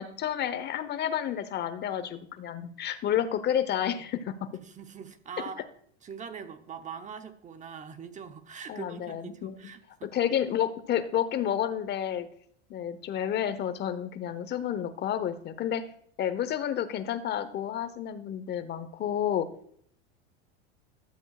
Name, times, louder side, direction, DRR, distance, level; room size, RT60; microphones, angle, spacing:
voice 1, 0.0-4.5 8.7-9.7 10.0-12.3 12.7-15.8 16.2-19.5, left 10 dB, 35° left, 0.9 m, -30 dB
voice 2, 4.6-5.7 6.0-10.1, right 6 dB, 25° right, 0.9 m, -42 dB
12.5 x 7.8 x 2.4 m
supercardioid pair, 115°, 30 cm